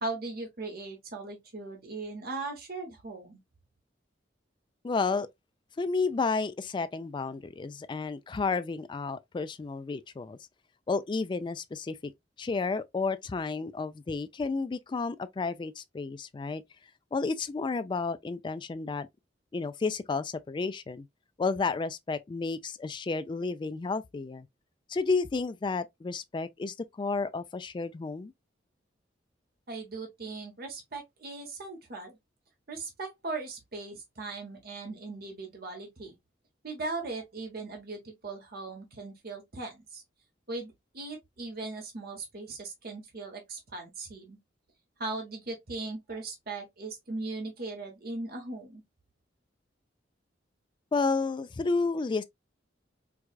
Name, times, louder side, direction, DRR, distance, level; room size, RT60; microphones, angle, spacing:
voice 1, 0.0-3.4 29.7-32.2 32.7-36.1 36.6-40.0 40.5-44.4 45.0-48.8, right 3 dB, 55° right, 1.0 m, -39 dB
voice 2, 4.8-5.3 5.8-10.4 10.9-12.1 12.4-16.6 17.1-19.1 19.5-21.1 21.4-24.5 24.9-28.3 50.9-52.2, left 4 dB, 25° left, 0.3 m, -31 dB
4.6 x 2.3 x 2.3 m
head